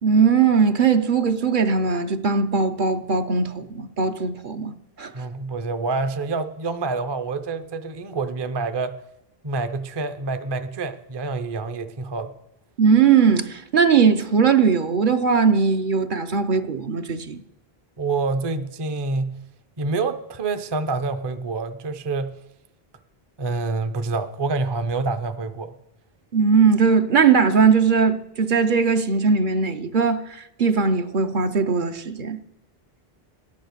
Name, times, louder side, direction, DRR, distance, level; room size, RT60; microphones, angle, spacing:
voice 1, 0.0-5.1 12.8-17.4 26.3-30.2 30.6-32.4, right 5 dB, 55° right, 0.8 m, -19 dB
voice 2, 5.1-9.0 9.4-12.3 18.0-19.4 19.8-22.3 23.4-25.7, right 3 dB, 30° right, 0.6 m, -27 dB
13.5 x 10.5 x 6.6 m
omnidirectional pair, 1.0 m